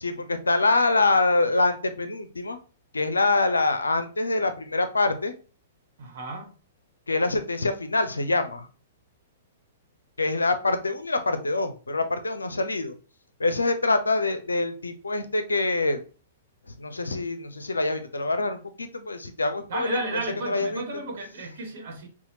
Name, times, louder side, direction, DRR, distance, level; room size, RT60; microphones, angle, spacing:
voice 1, 0.0-2.6 2.9-5.3 7.1-8.7 10.2-12.9 13.4-16.0 16.8-20.2 20.5-21.0, left 2 dB, 75° left, 0.6 m, -25 dB
voice 2, 6.0-6.5 19.7-22.1, right 2 dB, 55° right, 1.2 m, -33 dB
5.5 x 2.4 x 2.8 m
figure-of-eight pair, 110°, 0 cm